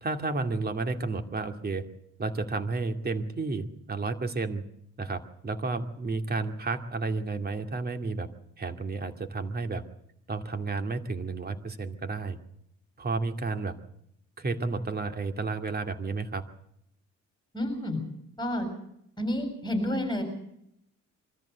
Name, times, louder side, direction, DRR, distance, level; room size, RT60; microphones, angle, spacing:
voice 1, 0.0-1.8 2.2-4.6 5.0-8.3 8.6-9.8 10.3-12.4 13.0-13.8 14.4-16.4, right 3 dB, 30° right, 7 dB, 2.3 m, -31 dB
voice 2, 17.5-18.0 18.4-18.7 19.2-20.2, left 1 dB, 15° left, 6 dB, 6.8 m, -29 dB
24.0 x 14.0 x 8.1 m, 0.76 s
cardioid pair, 90°, 30 cm